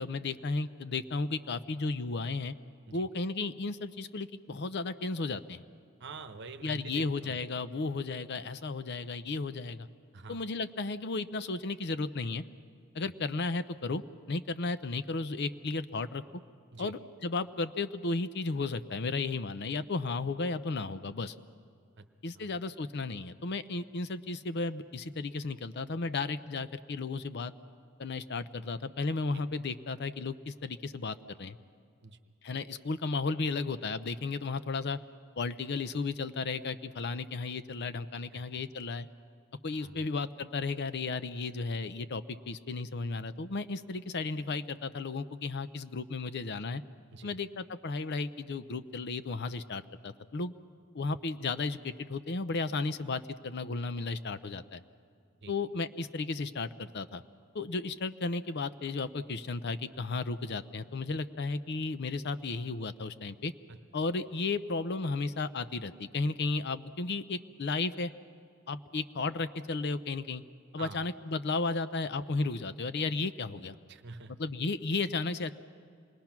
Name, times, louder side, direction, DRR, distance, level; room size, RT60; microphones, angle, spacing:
voice 1, 0.0-2.5 2.9-5.6 6.6-9.9 10.3-12.4 12.9-14.0 14.3-16.2 16.8-21.3 22.2-27.5 28.0-31.6 32.4-35.0 35.4-39.1 39.6-46.8 47.2-50.5 50.9-54.8 55.5-57.2 57.5-63.5 63.9-68.1 68.7-70.4 70.7-73.8 74.4-75.5, left 3 dB, 55° left, 12 dB, 0.7 m, -34 dB
voice 2, 6.0-7.4 10.1-10.4 13.0-13.1 16.7-16.9 22.0-22.1 22.3-22.6 29.3-29.4 32.0-32.2 38.3-38.6 39.7-40.1 47.1-47.4 55.4-55.5 63.7-63.8 70.8-71.0 73.9-74.4, right 3 dB, 55° right, 9 dB, 1.0 m, -47 dB
27.0 x 20.5 x 6.0 m, 2.3 s
head